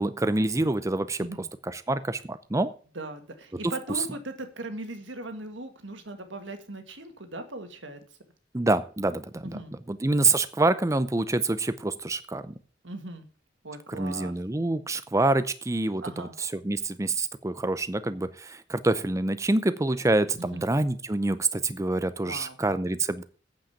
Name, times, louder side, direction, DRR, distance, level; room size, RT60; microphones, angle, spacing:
voice 1, 0.0-1.3 1.7-2.7 8.5-9.6 9.9-12.5 13.9-23.2, right 2 dB, 15° right, 13 dB, 0.6 m, -26 dB
voice 2, 3.0-8.0 9.4-9.7 12.8-13.3 13.6-14.3 16.0-16.3 20.4-20.7 22.2-22.6, right 2 dB, 85° right, 8 dB, 1.8 m, -39 dB
8.9 x 7.7 x 7.1 m, 0.40 s
head